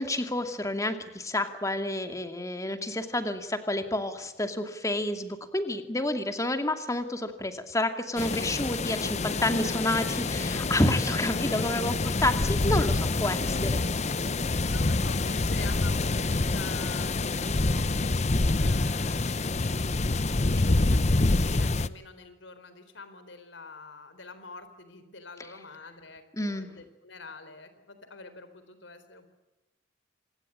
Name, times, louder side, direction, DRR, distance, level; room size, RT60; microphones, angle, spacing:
voice 1, 0.0-13.8 26.4-26.7, left 1 dB, 15° left, 7 dB, 2.5 m, -29 dB
sound 1, 8.2-21.9, left 2 dB, 40° left, 0.8 m, -27 dB
voice 2, 13.6-17.9 18.6-19.5 20.0-29.3, left 3 dB, 85° left, 11 dB, 4.0 m, -46 dB
27.5 x 19.5 x 8.7 m, 1.0 s
head